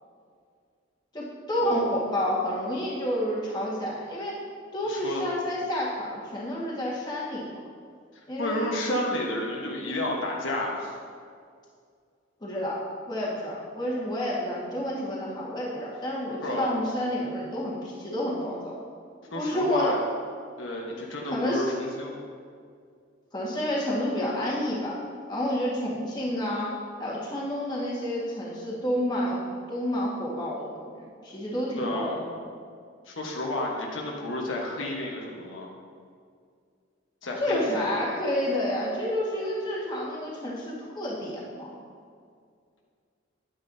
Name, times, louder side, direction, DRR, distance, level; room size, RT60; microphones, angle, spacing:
voice 1, 1.1-4.4 4.7-7.5 8.3-8.7 12.4-12.8 13.1-18.7 19.3-19.9 20.9-21.7 23.3-25.0 25.3-26.7 27.0-29.4 29.7-32.3 37.4-41.7, left 1 dB, 20° left, -6 dB, 1.6 m, -29 dB
voice 2, 4.8-5.2 8.4-11.0 16.4-16.7 19.3-20.0 20.6-22.1 31.8-32.2 33.1-35.7 37.2-37.9, left 1 dB, 80° left, -2 dB, 1.2 m, -31 dB
9.7 x 9.0 x 2.7 m, 2.2 s
head